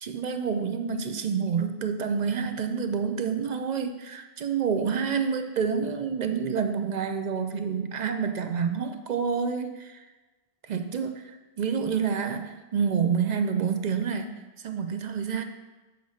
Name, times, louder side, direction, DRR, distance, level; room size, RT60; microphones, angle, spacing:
voice 1, 0.0-10.1 10.7-14.3 14.6-15.4, right 6 dB, 50° right, 7 dB, 0.6 m, -28 dB
7.0 x 4.0 x 6.3 m, 1.2 s
omnidirectional pair, 1.1 m